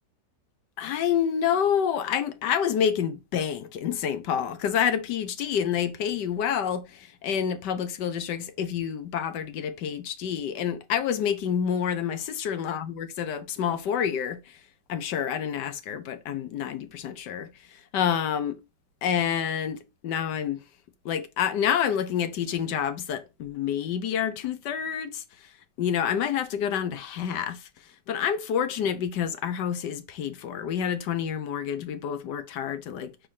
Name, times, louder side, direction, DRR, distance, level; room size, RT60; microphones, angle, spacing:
voice 1, 0.8-14.4 14.9-17.5 17.9-18.6 19.0-20.6 21.0-25.2 25.8-27.7 28.1-33.1, left 8 dB, 70° left, 1.4 m, -28 dB
5.0 x 4.3 x 5.6 m
omnidirectional pair, 2.0 m